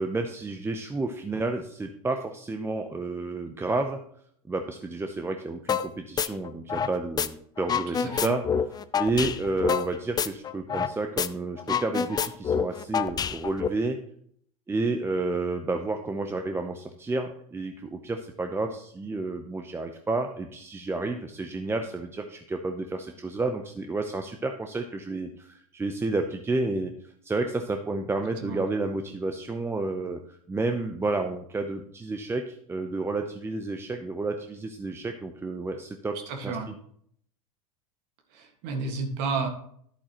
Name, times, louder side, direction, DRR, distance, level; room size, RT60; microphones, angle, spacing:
voice 1, 0.0-4.0 4.5-8.4 9.0-14.0 14.7-26.9 27.2-30.2 30.5-36.2, right 3 dB, 10° right, 5 dB, 0.7 m, -30 dB
sound 1, 5.7-5.9 6.2-7.3 7.6-10.9 11.2-11.3 11.6-13.7, left 7 dB, 20° left, 0.5 m, -27 dB
voice 2, 8.0-8.3 28.4-28.6 36.3-36.7 38.3-39.5, right 4 dB, 60° right, 4 dB, 1.8 m, -31 dB
11.0 x 8.3 x 3.0 m, 0.65 s
hypercardioid pair, 95°, 19 cm